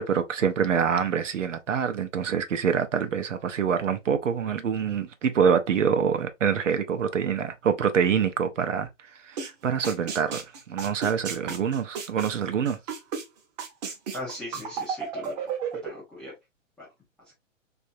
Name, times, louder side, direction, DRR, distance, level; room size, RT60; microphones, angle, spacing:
voice 1, 0.0-12.8, right 7 dB, 70° right, 0.7 m, -26 dB
sound 1, 9.4-9.5 9.8-13.2 13.6-15.9, right 6 dB, 35° right, 0.8 m, -33 dB
voice 2, 14.1-15.4 15.8-16.3 16.8-16.9, left 1 dB, ahead, 0.4 m, -38 dB
3.3 x 2.6 x 2.5 m
figure-of-eight pair, 120°, 39 cm